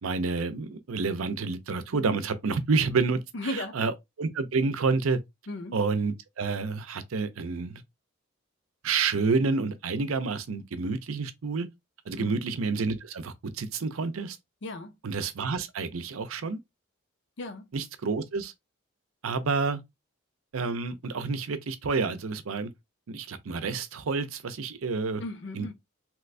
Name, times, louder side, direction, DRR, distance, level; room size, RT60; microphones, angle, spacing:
voice 1, 0.0-5.2 5.7-7.8 8.8-11.7 12.1-14.4 15.0-16.6 17.7-18.5 19.2-19.8 20.5-22.7 23.1-25.2 25.5-25.7, right 4 dB, 90° right, 0.6 m, -29 dB
voice 2, 3.3-3.8 5.5-5.8 12.2-12.5 14.6-15.0 17.4-17.7 25.2-25.7, left 2 dB, 55° left, 0.6 m, -36 dB
3.0 x 2.5 x 3.3 m
head